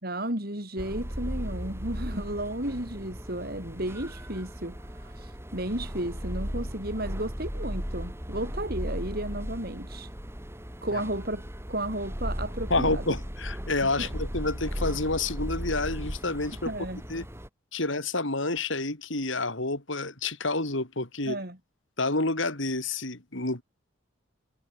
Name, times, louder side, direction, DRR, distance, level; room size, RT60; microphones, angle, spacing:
voice 1, 0.0-10.1 10.8-11.4 11.7-13.0 13.8-14.1 16.7-17.0 21.3-21.6, right 1 dB, 50° right, 6.0 m, -33 dB
sound 1, 0.8-17.5, equal, 10° right, 4.3 m, -36 dB
voice 2, 12.7-16.7 17.1-17.3 17.7-21.4 22.0-23.6, left 2 dB, 65° left, 3.6 m, -29 dB
head